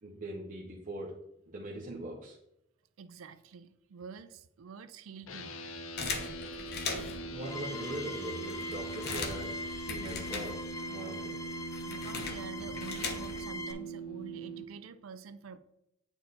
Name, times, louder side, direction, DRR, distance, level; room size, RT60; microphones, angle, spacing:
voice 1, 0.0-2.4 6.9-11.4, right 1 dB, 40° right, -3 dB, 0.9 m, -42 dB
voice 2, 3.0-6.2 11.8-15.6, right 5 dB, 80° right, 11 dB, 0.4 m, -48 dB
sound 1, 5.3-14.6, right 3 dB, 80° left, 0.7 m, -41 dB
sound 2, 6.0-7.3 7.9-8.0 8.3-10.9 11.2-13.6, left 4 dB, 55° left, 1.1 m, -39 dB
sound 3, 7.4-13.7, left 3 dB, 15° left, 0.4 m, -43 dB
8.1 x 4.5 x 3.9 m, 0.83 s
head